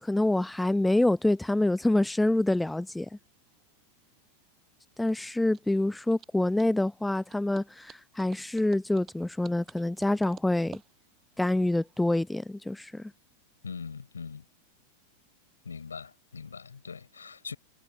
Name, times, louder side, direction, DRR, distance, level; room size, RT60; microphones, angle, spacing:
voice 1, 0.0-3.1 5.0-10.8 11.4-13.1, left 1 dB, 5° left, 0.9 m, -26 dB
sound 1, 3.3-12.2, right 9 dB, 25° right, 7.5 m, -54 dB
voice 2, 13.6-14.4 15.6-17.6, left 5 dB, 75° left, 6.0 m, -41 dB
figure-of-eight pair, 90°, 0 cm